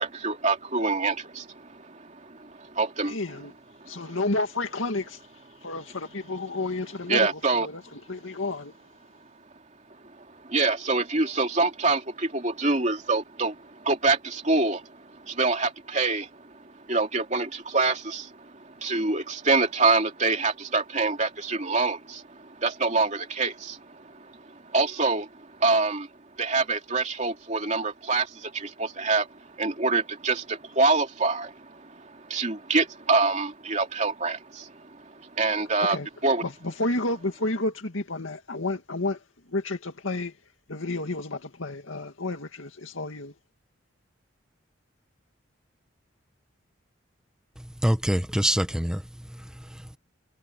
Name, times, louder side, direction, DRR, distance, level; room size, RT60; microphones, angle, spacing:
voice 1, 0.0-3.2 3.8-4.2 7.1-7.7 10.2-26.1 26.4-36.0 36.2-36.4, right 3 dB, 35° right, 2.8 m, -26 dB
voice 2, 3.0-3.5 3.9-5.3 5.6-8.7 35.8-36.1 36.4-40.4 40.7-43.3, left 2 dB, 85° left, 2.2 m, -31 dB
voice 3, 47.6-50.0, equal, 5° right, 1.1 m, -27 dB
head